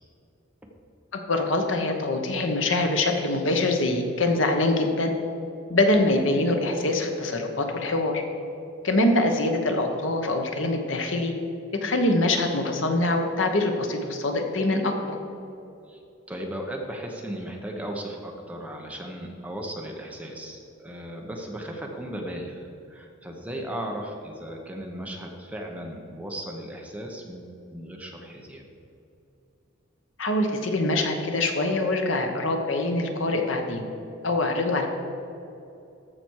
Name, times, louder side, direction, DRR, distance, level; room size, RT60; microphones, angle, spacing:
voice 1, 1.1-5.1 5.7-8.2 8.8-11.3 11.8-15.2 30.2-33.8 34.2-34.9, left 2 dB, 70° left, 4 dB, 1.1 m, -24 dB
voice 2, 16.3-28.6, right 1 dB, 5° right, 0 dB, 1.0 m, -36 dB
14.0 x 6.0 x 4.7 m, 2.8 s
head